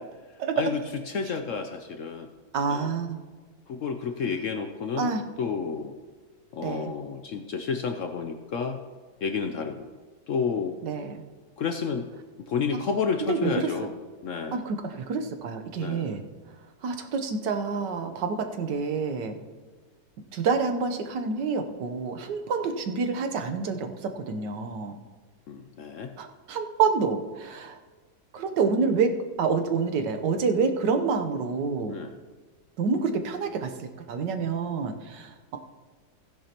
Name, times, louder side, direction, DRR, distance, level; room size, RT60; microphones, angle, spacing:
voice 1, 0.4-0.7 2.5-3.2 5.0-5.2 6.6-6.9 10.8-11.2 13.3-13.7 14.5-16.2 16.8-19.3 20.3-24.9 26.2-27.8 28.3-29.1 29.4-32.0 32.8-35.6, right 5 dB, 80° right, 6 dB, 1.5 m, -28 dB
voice 2, 1.1-2.3 2.7-2.9 3.7-5.1 5.4-5.9 6.5-8.8 9.2-9.9 10.3-10.8 11.6-12.1 12.5-13.9 14.2-14.6 15.8-16.1 25.5-26.1 31.9-32.1, left 5 dB, 65° left, 6 dB, 0.8 m, -30 dB
15.5 x 10.0 x 2.9 m, 1.4 s
omnidirectional pair, 1.9 m